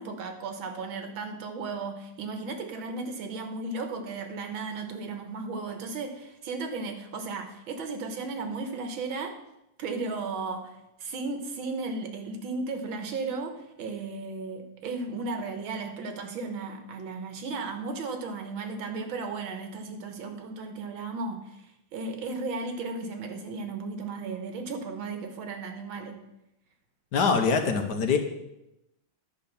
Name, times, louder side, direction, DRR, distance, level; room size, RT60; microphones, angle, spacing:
voice 1, 0.0-9.4 9.8-21.7 21.9-26.2, right 3 dB, 90° right, 6 dB, 2.0 m, -35 dB
voice 2, 27.1-28.2, left 5 dB, 60° left, 5 dB, 1.5 m, -23 dB
10.5 x 5.1 x 6.7 m, 0.88 s
omnidirectional pair, 2.1 m